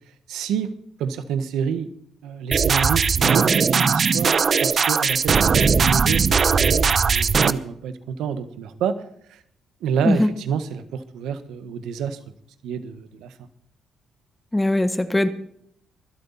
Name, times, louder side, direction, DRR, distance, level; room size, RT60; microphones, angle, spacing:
voice 1, 0.3-0.7 1.0-1.9 2.2-9.0 9.3-9.4 9.8-12.2 12.6-13.3, right 7 dB, 85° right, 11 dB, 1.4 m, -28 dB
sound 1, 2.5-7.5, right 5 dB, 40° right, 0.7 m, -19 dB
voice 2, 14.5-15.3, left 1 dB, 10° left, 11 dB, 1.2 m, -20 dB
24.0 x 8.3 x 4.3 m, 0.67 s
cardioid pair, 105°, 0 cm